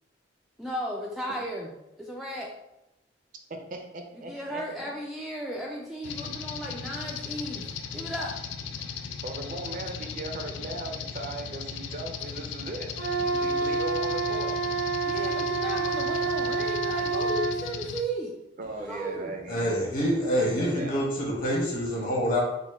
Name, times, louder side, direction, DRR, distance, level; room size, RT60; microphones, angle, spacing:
voice 1, 0.6-1.7 2.1-2.5 4.3-8.3 15.0-18.3 18.9-19.4, right 1 dB, ahead, -3 dB, 0.4 m, -35 dB
voice 2, 3.5-4.9 9.2-14.6 18.6-21.0, right 2 dB, 50° right, 3 dB, 0.5 m, -38 dB
sound 1, 6.0-18.0, left 6 dB, 85° left, 0.3 m, -37 dB
Wind instrument woodwind instrument, 13.0-17.6, right 4 dB, 80° right, 0.9 m, -28 dB
voice 3, 19.5-22.4, equal, 50° left, -3 dB, 1.4 m, -26 dB
4.1 x 2.2 x 4.4 m, 0.89 s
head